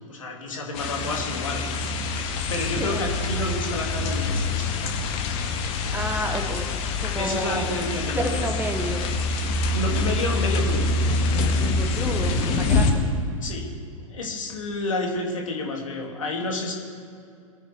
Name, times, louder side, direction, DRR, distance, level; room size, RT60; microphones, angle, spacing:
voice 1, 0.1-1.7 2.5-4.7 7.1-8.4 9.7-11.4 13.4-13.7 14.1-16.7, left 2 dB, 65° left, 0 dB, 2.7 m, -30 dB
sound 1, 0.7-12.9, left 3 dB, 35° left, 1.7 m, -25 dB
voice 2, 5.9-6.7 7.0-7.7 8.2-9.0 11.5-13.0, right 2 dB, 10° right, 6 dB, 1.1 m, -30 dB
23.0 x 9.4 x 4.7 m, 2.4 s
figure-of-eight pair, 100°, 18 cm